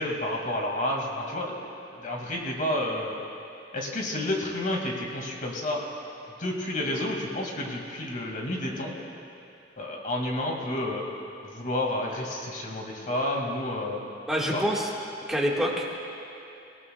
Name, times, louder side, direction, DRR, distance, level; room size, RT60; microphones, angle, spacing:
voice 1, 0.0-1.6 2.0-3.1 3.7-5.8 6.4-9.0 9.8-11.0 11.4-14.0 14.5-14.6, left 1 dB, 45° left, -1 dB, 2.2 m, -30 dB
voice 2, 14.3-14.9 15.3-15.8, equal, ahead, -4 dB, 1.8 m, -26 dB
25.5 x 17.5 x 2.4 m, 2.8 s
head